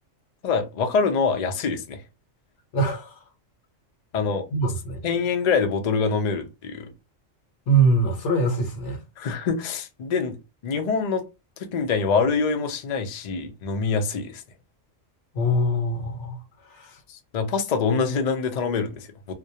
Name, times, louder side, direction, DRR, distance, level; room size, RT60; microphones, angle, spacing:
voice 1, 0.4-2.0 4.1-4.4 5.0-6.9 9.2-10.4 10.6-11.3 11.6-14.4 17.1-19.3, left 5 dB, 85° left, 0.3 m, -25 dB
voice 2, 2.7-3.2 4.5-5.0 7.7-9.0 15.3-16.4 16.7-17.0, right 2 dB, 65° left, 1.0 m, -23 dB
2.5 x 2.1 x 2.7 m
omnidirectional pair, 1.4 m